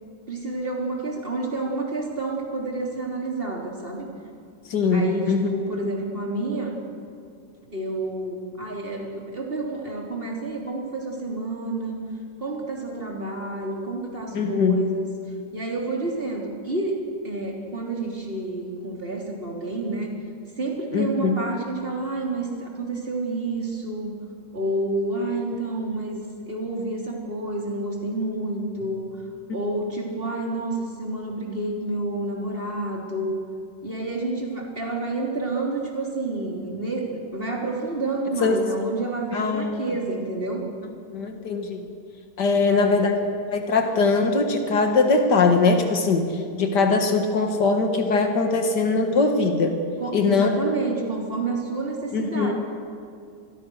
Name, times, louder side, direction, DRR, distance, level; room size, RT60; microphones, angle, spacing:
voice 1, 0.3-4.1 4.9-6.8 7.7-12.0 12.4-15.2 15.5-17.0 17.2-20.1 20.6-24.2 24.5-26.2 26.5-29.1 29.5-33.4 33.8-40.6 42.5-43.1 50.0-52.5, right 2 dB, 35° right, 0 dB, 4.0 m, -29 dB
voice 2, 4.7-5.5 14.3-14.8 20.9-21.4 38.4-38.6 39.3-39.9 41.1-41.8 42.4-43.1 43.5-46.3 46.6-49.8 50.1-50.8 52.1-52.5, left 4 dB, 90° left, 5 dB, 2.3 m, -21 dB
27.0 x 21.0 x 6.5 m, 2.4 s
omnidirectional pair, 1.8 m